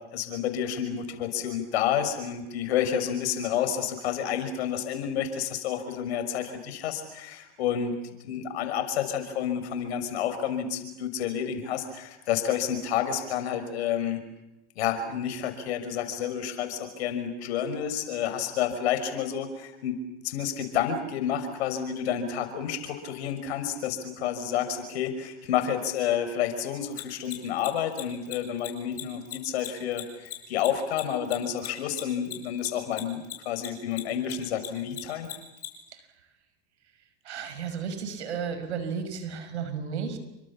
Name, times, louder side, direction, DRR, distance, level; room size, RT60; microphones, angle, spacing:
voice 1, 0.1-8.0 8.2-14.2 14.8-20.0 20.2-35.3, left 9 dB, 75° left, 9 dB, 6.0 m, -30 dB
Mechanisms, 26.9-33.7 33.9-35.7, left 15 dB, 50° left, 7.9 m, -37 dB
voice 2, 37.2-40.2, right 6 dB, 85° right, 10 dB, 6.0 m, -33 dB
29.5 x 25.0 x 7.4 m, 0.95 s
hypercardioid pair, 95°, 33 cm